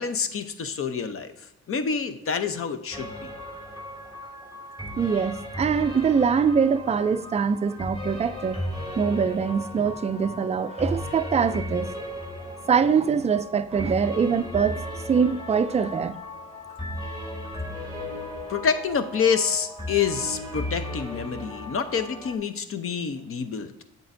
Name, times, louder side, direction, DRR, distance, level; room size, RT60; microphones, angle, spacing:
voice 1, 0.0-1.3 1.7-3.3 18.5-23.8, left 6 dB, 45° left, 0.7 m, -27 dB
sound 1, 2.9-22.3, left 1 dB, 20° left, 2.1 m, -36 dB
voice 2, 5.0-8.6 9.0-11.9 12.7-16.2, right 6 dB, 20° right, 0.4 m, -23 dB
8.3 x 7.7 x 2.6 m
cardioid pair, 90°, 30 cm